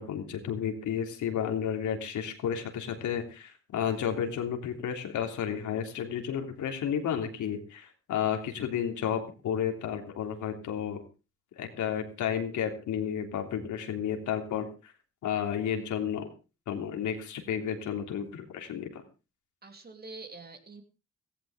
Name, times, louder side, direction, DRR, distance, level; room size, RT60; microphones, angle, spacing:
voice 1, 0.0-11.0 11.6-14.9 15.2-16.3 16.7-19.0, left 8 dB, 75° left, 4 dB, 3.2 m, -32 dB
voice 2, 19.6-20.8, right 3 dB, 30° right, 6 dB, 3.2 m, -45 dB
16.0 x 15.5 x 3.6 m, 0.31 s
cardioid pair, 90°, 30 cm